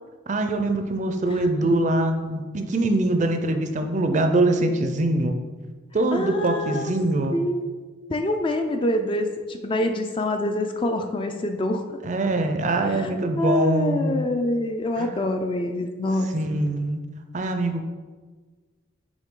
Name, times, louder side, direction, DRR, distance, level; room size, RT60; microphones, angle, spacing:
voice 1, 0.3-5.4 5.9-7.4 12.0-14.2 15.0-15.1 16.3-17.0 17.3-17.9, right 2 dB, 35° right, 6 dB, 0.5 m, -23 dB
voice 2, 1.3-1.8 6.1-6.9 7.3-7.8 8.1-12.0 12.8-16.3, left 1 dB, 25° left, 5 dB, 0.4 m, -26 dB
9.0 x 3.2 x 3.7 m, 1.4 s
head